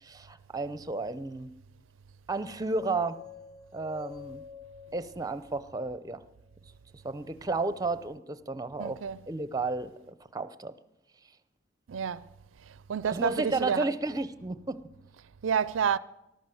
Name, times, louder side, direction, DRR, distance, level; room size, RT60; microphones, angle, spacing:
voice 1, 0.0-1.5 2.3-3.2 3.7-4.4 4.9-6.2 7.0-9.0 9.3-9.9 10.3-10.7 13.0-14.8, right 3 dB, 20° right, 0.7 m, -32 dB
sound 1, 2.4-6.5, left 7 dB, 5° left, 1.2 m, -48 dB
voice 2, 8.8-9.2 11.9-12.3 12.9-13.8 15.4-16.0, right 7 dB, 90° right, 0.4 m, -29 dB
13.5 x 12.0 x 7.6 m
head